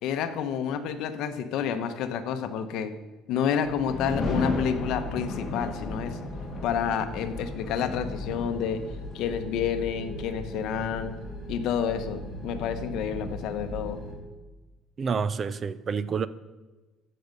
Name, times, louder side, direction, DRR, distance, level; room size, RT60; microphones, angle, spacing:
voice 1, 0.0-3.0 3.3-6.2 6.6-11.2 11.5-14.0, left 8 dB, 60° left, 9 dB, 0.9 m, -29 dB
sound 1, 3.6-14.1, equal, 5° left, 3.1 m, -39 dB
sound 2, 3.8-9.3, left 3 dB, 25° left, 1.4 m, -34 dB
voice 2, 15.0-16.3, right 6 dB, 25° right, 16 dB, 0.4 m, -28 dB
15.5 x 6.7 x 5.2 m, 1.2 s
cardioid pair, 175°, 0 cm